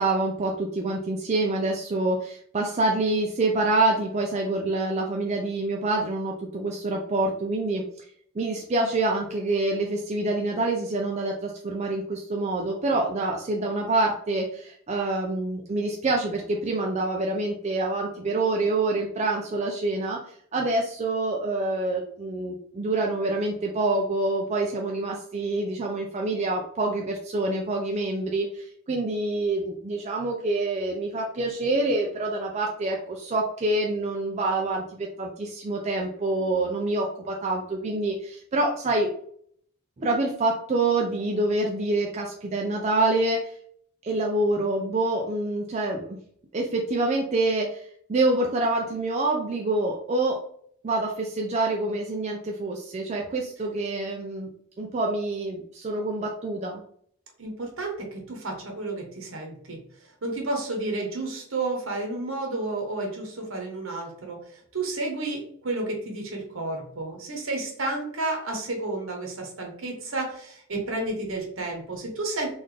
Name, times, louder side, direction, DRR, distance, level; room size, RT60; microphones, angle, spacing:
voice 1, 0.0-7.8 8.3-20.2 20.5-39.1 40.0-43.5 44.0-46.2 46.5-50.4 50.8-54.5 54.8-56.8, right 2 dB, 30° right, 0 dB, 0.4 m, -26 dB
voice 2, 57.4-59.8 60.2-72.5, right 2 dB, 65° right, 1 dB, 1.0 m, -31 dB
3.9 x 2.6 x 3.2 m, 0.62 s
head